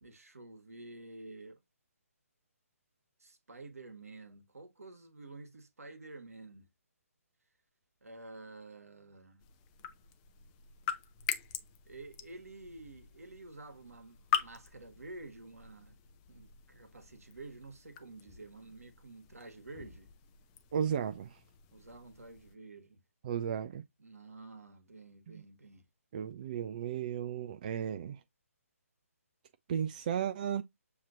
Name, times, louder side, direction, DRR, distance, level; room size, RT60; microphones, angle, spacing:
voice 1, 0.0-1.6 3.2-6.7 8.0-9.4 11.8-16.0 16.3-20.1 21.7-23.0 24.0-25.8, right 2 dB, 70° right, 1.4 m, -50 dB
sound 1, 9.4-22.5, left 10 dB, 20° left, 0.5 m, -43 dB
voice 2, 20.7-21.4 23.2-23.8 25.3-25.4 26.1-28.2 29.7-30.6, right 8 dB, 35° right, 0.4 m, -34 dB
7.1 x 2.9 x 2.5 m
figure-of-eight pair, 140°, 8 cm